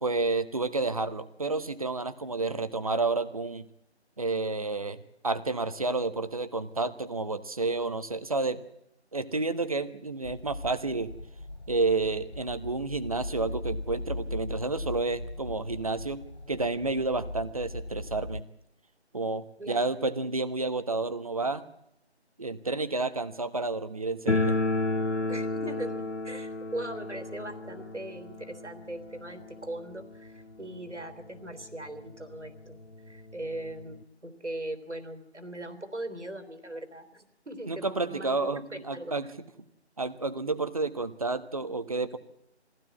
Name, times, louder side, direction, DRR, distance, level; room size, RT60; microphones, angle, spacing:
voice 1, 0.0-3.6 4.2-8.6 9.1-11.1 11.7-16.2 16.5-18.4 19.1-21.6 22.4-24.6 37.7-39.3 40.0-42.2, right 3 dB, 30° right, 11 dB, 1.2 m, -30 dB
sound 1, 10.2-18.4, left 2 dB, 40° left, 0.8 m, -39 dB
sound 2, 24.3-31.0 31.2-31.3 31.6-31.7 32.4-32.5 32.8-34.0, left 2 dB, 90° left, 1.7 m, -32 dB
voice 2, 25.3-32.8 33.0-39.3 40.4-40.6, right 1 dB, 85° right, 10 dB, 3.5 m, -40 dB
22.5 x 16.0 x 8.4 m, 0.78 s
figure-of-eight pair, 160°, 34 cm